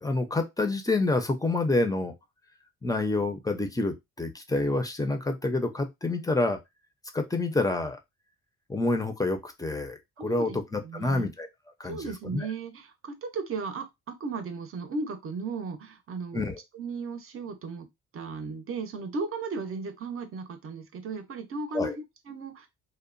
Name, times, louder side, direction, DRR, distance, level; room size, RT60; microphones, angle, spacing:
voice 1, 0.0-2.1 2.8-6.6 7.1-8.0 8.7-11.5 11.8-12.5 16.3-16.6 21.7-22.0, left 2 dB, 10° left, 0.5 m, -28 dB
voice 2, 10.2-11.3 11.8-17.9 18.1-22.7, right 4 dB, 45° right, 0.7 m, -36 dB
2.8 x 2.1 x 2.4 m
cardioid pair, 90°, 30 cm